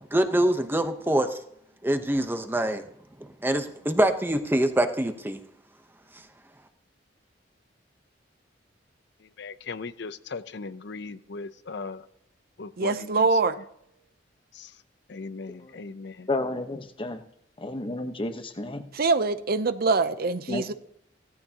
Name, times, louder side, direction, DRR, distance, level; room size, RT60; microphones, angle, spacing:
voice 1, 0.1-1.4 1.8-2.8 3.4-5.4, right 1 dB, 10° right, 0.9 m, -24 dB
voice 2, 9.4-12.1 12.6-13.3 14.5-14.7 15.1-16.3, left 4 dB, 65° left, 0.6 m, -38 dB
voice 3, 12.8-13.6 18.9-20.7, right 4 dB, 55° right, 0.7 m, -24 dB
voice 4, 15.5-15.8 16.3-17.2 17.6-18.8 20.5-20.7, left 2 dB, 30° left, 1.1 m, -32 dB
16.5 x 13.5 x 2.9 m
head